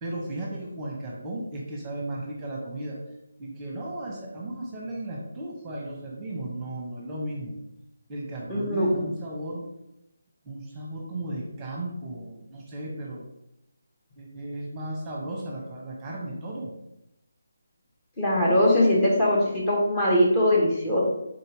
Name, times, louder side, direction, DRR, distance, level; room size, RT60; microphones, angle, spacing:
voice 1, 0.0-3.0 3.4-7.6 8.1-9.6 10.4-13.3 14.2-16.7, right 1 dB, 15° right, -2 dB, 0.9 m, -35 dB
voice 2, 8.5-9.0 18.2-21.0, left 1 dB, 15° left, -4 dB, 0.9 m, -21 dB
3.9 x 2.7 x 4.7 m, 0.85 s
figure-of-eight pair, 160°, 0 cm